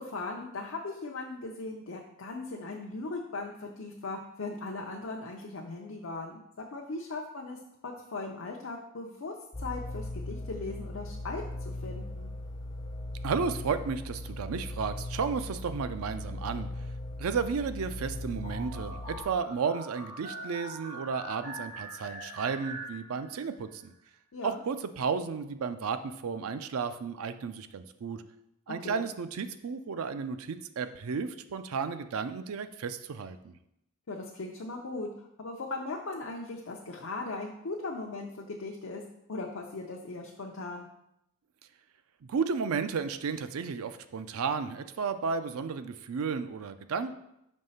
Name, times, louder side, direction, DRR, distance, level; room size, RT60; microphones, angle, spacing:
voice 1, 0.0-12.3 24.3-24.6 28.8-29.0 34.1-39.0 39.3-40.9, left 3 dB, 70° left, 0 dB, 0.6 m, -38 dB
sound 1, 9.5-19.2, left 1 dB, 20° left, 0.5 m, -38 dB
voice 2, 13.2-16.7 17.2-23.9 24.4-28.2 28.7-33.5 42.2-47.1, right 5 dB, 85° right, 11 dB, 0.4 m, -33 dB
sound 2, 18.4-23.5, right 1 dB, 30° right, 2.0 m, -43 dB
5.3 x 3.2 x 5.5 m, 0.81 s
head